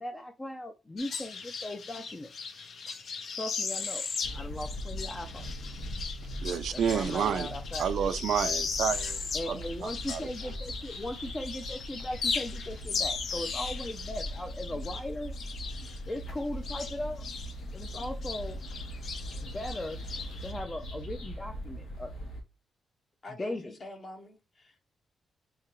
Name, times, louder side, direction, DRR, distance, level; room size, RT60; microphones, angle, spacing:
voice 1, 0.0-2.3 3.4-4.0 4.3-5.5 6.7-8.2 9.3-15.3 16.1-17.2 17.7-18.6 19.4-20.0 20.4-22.1 23.4-23.8, left 1 dB, 15° left, 0.4 m, -38 dB
sound 1, 1.0-11.1 11.4-17.5 17.8-20.5, left 5 dB, 55° left, 0.7 m, -37 dB
sound 2, 4.2-22.4, equal, 85° left, 1.8 m, -40 dB
voice 2, 6.4-7.5 7.8-9.2 9.5-10.3, right 8 dB, 80° right, 0.4 m, -30 dB
voice 3, 23.2-24.9, left 2 dB, 40° left, 1.1 m, -46 dB
4.7 x 2.8 x 3.0 m
wide cardioid pair, 145°, 0 cm